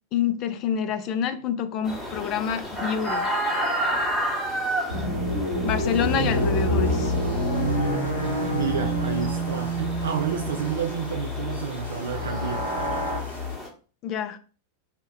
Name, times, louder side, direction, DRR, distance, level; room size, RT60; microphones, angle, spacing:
voice 1, 0.1-3.3 5.6-7.1 14.0-14.4, left 8 dB, 35° left, 0.3 m, -27 dB
sound 1, 1.8-13.7, right 1 dB, 10° left, 1.0 m, -32 dB
sound 2, 4.9-10.9 11.9-13.2, equal, 90° right, 1.3 m, -27 dB
sound 3, 5.7-13.5, left 7 dB, 70° left, 0.7 m, -36 dB
voice 2, 8.5-12.7, right 7 dB, 65° right, 0.4 m, -30 dB
2.8 x 2.1 x 3.4 m
figure-of-eight pair, 90°, 0 cm